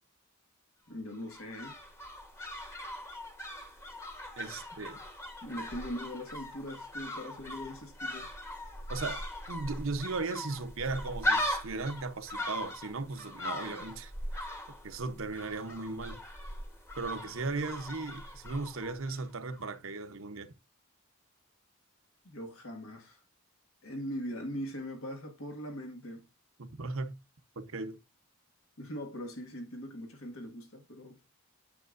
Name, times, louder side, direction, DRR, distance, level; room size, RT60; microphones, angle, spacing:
voice 1, 0.9-1.8 5.4-8.3 22.2-23.2 23.8-26.2 28.8-31.2, equal, 70° left, 1.7 m, -41 dB
sound 1, 1.1-19.3 19.5-19.6, left 1 dB, 15° left, 1.2 m, -39 dB
voice 2, 4.4-5.0 8.9-9.2 9.5-14.1 14.8-16.2 17.0-20.5 26.6-27.2 27.6-28.0, right 3 dB, 65° right, 0.9 m, -37 dB
9.3 x 7.5 x 2.6 m
head